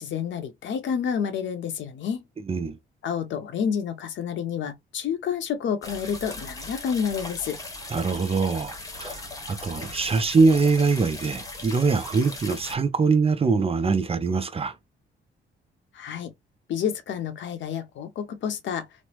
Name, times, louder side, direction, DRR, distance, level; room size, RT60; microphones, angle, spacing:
voice 1, 0.0-2.2 3.0-7.6 15.9-16.3 16.7-18.9, left 7 dB, 70° left, 0.8 m, -29 dB
sound 1, 5.8-12.8, left 2 dB, 15° left, 1.0 m, -38 dB
voice 2, 7.9-9.2 9.5-14.8, right 4 dB, 30° right, 0.5 m, -23 dB
3.1 x 2.0 x 2.9 m
cardioid pair, 90°, 20 cm